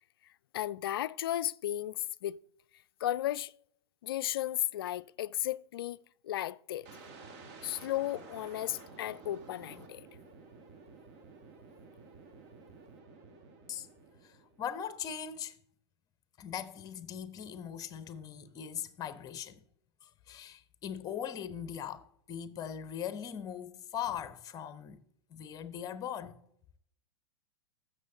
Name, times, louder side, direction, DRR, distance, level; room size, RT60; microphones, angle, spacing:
voice 1, 0.5-2.4 3.0-3.5 4.0-6.0 6.2-6.9 7.6-10.1, left 13 dB, 60° left, 0.4 m, -34 dB
sound 1, 6.9-14.7, right 4 dB, 45° right, 1.8 m, -52 dB
voice 2, 14.6-15.6 16.4-19.6 20.0-25.0 25.3-26.4, left 9 dB, 25° left, 0.8 m, -40 dB
15.0 x 6.6 x 3.9 m
figure-of-eight pair, 95°, 14 cm